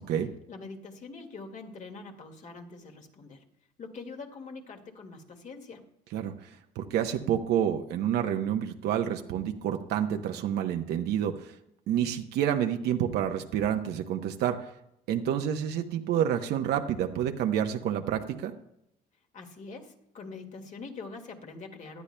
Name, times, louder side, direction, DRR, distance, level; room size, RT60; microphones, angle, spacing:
voice 1, 0.5-3.4 3.8-5.8 19.3-22.0, left 4 dB, 45° left, 3 dB, 2.0 m, -44 dB
voice 2, 6.1-6.5 6.8-11.5 11.9-14.6 15.1-18.5, right 9 dB, 75° right, 4 dB, 0.9 m, -28 dB
18.5 x 12.0 x 2.2 m, 0.78 s
cardioid pair, 110°, 17 cm